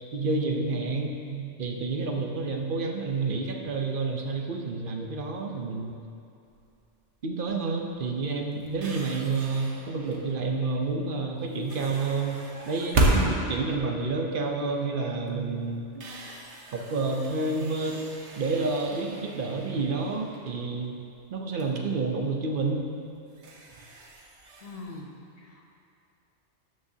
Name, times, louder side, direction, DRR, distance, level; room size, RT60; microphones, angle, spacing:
voice 1, 0.1-5.9 7.2-16.0 16.7-18.0 18.4-21.0 21.3-22.9, right 3 dB, 50° right, 2 dB, 0.9 m, -29 dB
sound 1, 6.5-6.9 7.4-7.6 8.0-10.5 11.5-14.9 15.3-15.4 15.8-21.3 21.6-21.7 22.6-22.8 23.2-25.0, right 2 dB, 75° right, 1.2 m, -33 dB
voice 2, 24.6-25.1 25.4-25.7, left 3 dB, 35° left, 0 dB, 0.7 m, -42 dB
12.5 x 6.3 x 2.8 m, 2.6 s
omnidirectional pair, 1.2 m